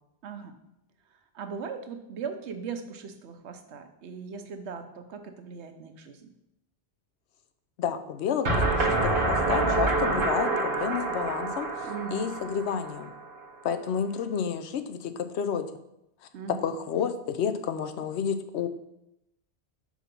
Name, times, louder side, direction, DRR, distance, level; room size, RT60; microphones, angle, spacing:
voice 1, 0.2-0.6 1.1-6.3 11.8-12.3 16.3-16.7, right 6 dB, 85° right, 8 dB, 1.1 m, -39 dB
voice 2, 7.8-13.1 13.6-15.7 16.6-18.7, left 7 dB, 85° left, 10 dB, 0.9 m, -30 dB
sound 1, 8.5-13.4, right 2 dB, 55° right, 1.1 m, -27 dB
5.6 x 5.0 x 5.2 m, 0.84 s
omnidirectional pair, 1.1 m